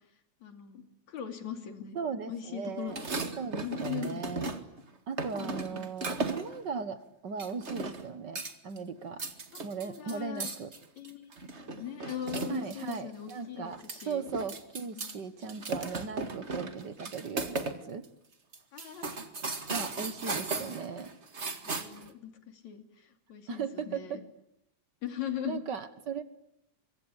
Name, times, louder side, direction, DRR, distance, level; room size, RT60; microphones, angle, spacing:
voice 1, 0.4-2.0 2.3-2.9 3.6-4.2 5.4-6.0 9.5-10.5 11.0-14.3 15.0-15.2 18.7-19.3 21.6-24.2 25.0-25.6, left 10 dB, 70° left, 6 dB, 4.2 m, -40 dB
voice 2, 1.9-3.0 3.4-4.5 5.1-9.2 9.6-10.7 12.5-18.0 19.7-21.1 23.5-24.2 25.4-26.2, right 5 dB, 45° right, 12 dB, 1.6 m, -38 dB
sound 1, 2.8-4.8 5.2-6.6 7.4-8.1 8.3-8.8 9.1-13.0 13.3-13.4 13.7-15.1 15.4-17.8 18.0-18.1 18.5-22.1, right 3 dB, 25° right, 1.8 m, -36 dB
25.0 x 23.5 x 9.9 m, 0.77 s
omnidirectional pair, 3.4 m